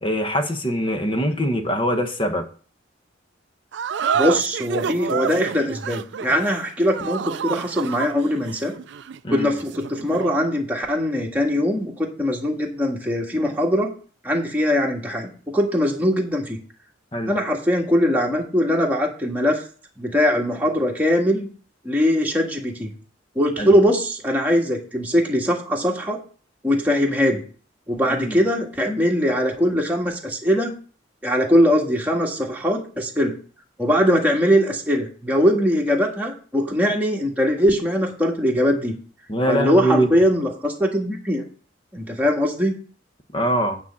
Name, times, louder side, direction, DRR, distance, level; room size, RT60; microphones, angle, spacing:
voice 1, 0.0-2.4 9.2-9.5 17.1-17.3 23.6-23.7 28.1-28.4 39.3-40.1 43.3-43.8, equal, 25° left, 1.1 m, -23 dB
sound 1, 3.7-10.4, right 7 dB, 60° right, 0.4 m, -29 dB
voice 2, 4.1-8.7 9.3-13.9 14.2-16.6 17.3-19.6 20.0-21.5 21.8-22.9 23.3-26.2 26.6-27.4 27.9-30.7 31.2-33.3 33.8-38.9 39.5-41.4 41.9-42.8, equal, 10° right, 1.6 m, -21 dB
9.1 x 4.2 x 7.3 m
head